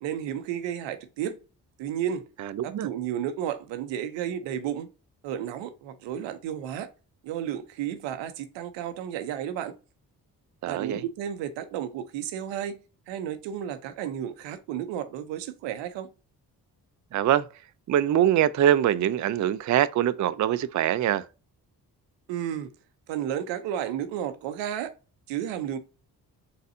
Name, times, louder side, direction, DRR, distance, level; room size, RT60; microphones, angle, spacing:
voice 1, 0.0-1.4 1.8-2.2 2.6-4.9 5.2-6.9 7.2-9.7 10.7-12.8 13.1-16.1 22.3-22.7 23.1-24.9 25.3-25.8, right 10 dB, 85° right, 0.7 m, -32 dB
voice 2, 2.4-2.9 10.6-11.0 17.1-17.5 17.9-21.2, right 11 dB, 45° right, 0.5 m, -23 dB
4.2 x 3.9 x 2.6 m
supercardioid pair, 45°, 43 cm